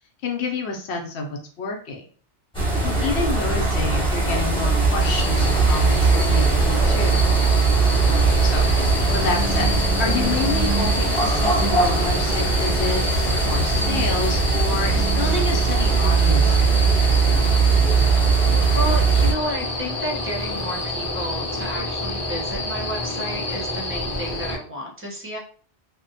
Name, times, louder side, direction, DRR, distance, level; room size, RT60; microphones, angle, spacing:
voice 1, 0.2-2.0 2.8-7.3 8.4-8.7 9.1-17.5, left 3 dB, 75° left, 2 dB, 0.8 m, -29 dB
sound 1, 2.5-19.3, right 4 dB, 5° left, 0.9 m, -20 dB
voice 2, 2.9-3.3 9.0-9.5 18.7-25.4, left 1 dB, 15° right, -2 dB, 0.5 m, -32 dB
sound 2, 5.0-24.6, left 1 dB, 40° left, 0.3 m, -28 dB
sound 3, 7.8-21.7, right 4 dB, 60° right, 0.6 m, -37 dB
2.6 x 2.1 x 2.6 m, 0.44 s
omnidirectional pair, 1.1 m